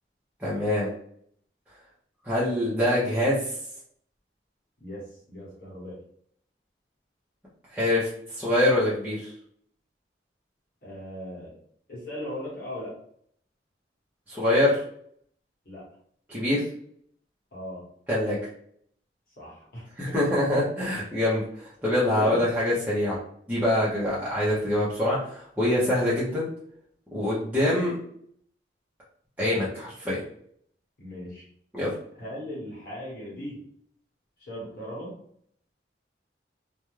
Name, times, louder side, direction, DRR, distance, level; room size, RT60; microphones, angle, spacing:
voice 1, 0.4-0.9 2.2-3.5 7.7-9.3 14.3-14.8 16.3-16.6 18.1-18.4 20.0-23.2 23.5-26.5 27.1-28.0 29.4-30.2 31.7-31.9, left 1 dB, 10° right, -9 dB, 0.6 m, -25 dB
voice 2, 4.8-6.0 10.8-11.6 11.9-13.0 15.6-15.9 17.5-17.9 19.4-20.2 22.1-22.4 23.9-24.1 31.0-31.5 32.1-33.6 34.4-35.2, equal, 55° left, -5 dB, 1.0 m, -38 dB
2.4 x 2.2 x 3.1 m, 0.64 s
head